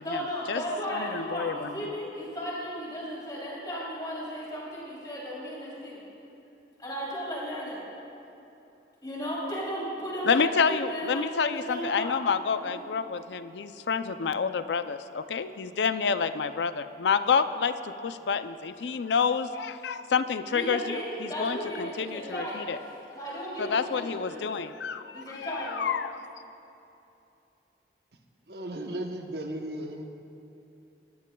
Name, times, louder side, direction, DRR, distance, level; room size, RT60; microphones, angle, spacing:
voice 1, 0.0-6.0 6.8-7.8 9.0-11.2 11.5-12.1 12.6-12.7 20.5-22.7 23.1-24.4 25.1-25.8, equal, 25° left, -6 dB, 3.1 m, -35 dB
voice 2, 0.9-1.7 10.3-22.8 23.6-26.3, left 6 dB, 80° left, 11 dB, 0.4 m, -28 dB
voice 3, 28.5-30.1, right 1 dB, 65° right, 3 dB, 0.9 m, -35 dB
21.0 x 13.5 x 2.3 m, 2.8 s
head